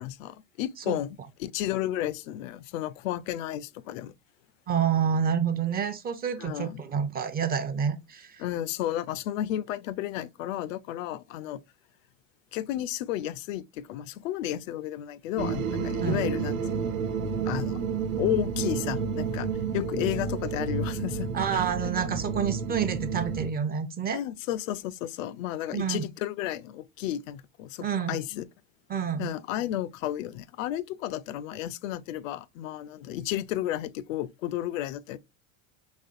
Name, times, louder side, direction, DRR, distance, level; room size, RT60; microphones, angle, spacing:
voice 1, 0.0-4.1 6.4-6.8 8.4-11.6 12.5-16.9 17.5-17.8 18.2-21.6 22.0-22.1 24.1-28.5 29.2-35.2, left 12 dB, 80° left, 0.5 m, -32 dB
voice 2, 4.7-8.4 16.0-16.3 21.3-24.2 25.7-26.0 27.8-28.2 28.9-29.3, right 7 dB, 25° right, 0.5 m, -28 dB
sound 1, 15.4-23.5, right 5 dB, 85° right, 0.9 m, -30 dB
4.2 x 3.0 x 2.5 m
supercardioid pair, 105°, 39 cm